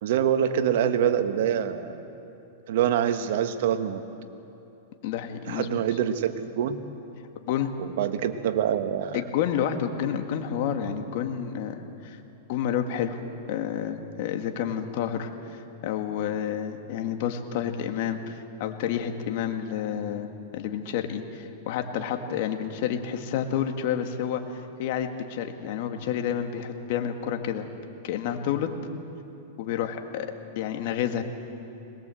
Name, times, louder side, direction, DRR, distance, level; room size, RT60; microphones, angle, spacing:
voice 1, 0.0-2.0 2.7-4.0 5.5-6.8 8.0-9.2, right 9 dB, 65° right, 8 dB, 1.4 m, -25 dB
voice 2, 5.0-5.8 7.5-7.7 9.1-12.2 12.5-13.2 13.5-27.7 28.0-28.7 29.6-30.3 30.6-31.2, left 9 dB, 55° left, 5 dB, 1.9 m, -29 dB
21.5 x 20.5 x 7.8 m, 2.9 s
hypercardioid pair, 140°, 0 cm